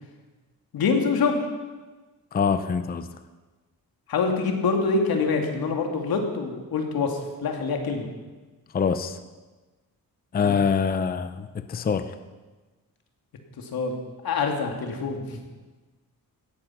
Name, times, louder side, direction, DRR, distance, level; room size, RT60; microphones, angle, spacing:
voice 1, 0.7-1.4 4.1-8.1 10.4-10.6 13.6-14.0 14.2-15.4, left 4 dB, 90° left, 3 dB, 2.7 m, -25 dB
voice 2, 2.3-3.1 8.7-9.2 10.3-12.2, left 6 dB, 25° left, 11 dB, 0.5 m, -25 dB
17.0 x 14.5 x 5.8 m, 1.2 s
wide cardioid pair, 175°, 35 cm